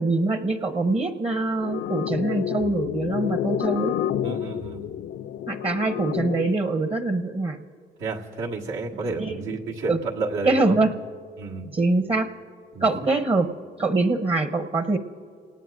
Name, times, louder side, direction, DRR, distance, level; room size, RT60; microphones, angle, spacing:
voice 1, 0.0-3.9 5.5-7.6 9.2-9.4 9.9-10.0 10.4-10.9 11.7-12.3 12.8-13.5 13.8-15.0, right 3 dB, 30° right, 9 dB, 0.8 m, -24 dB
sound 1, 1.6-6.6, left 10 dB, 70° left, 0.5 m, -29 dB
voice 2, 4.2-4.8 8.0-10.8 11.4-11.7 12.7-13.1, right 3 dB, 90° right, -3 dB, 1.7 m, -31 dB
27.0 x 18.5 x 2.6 m, 2.1 s
cardioid pair, 90°, 20 cm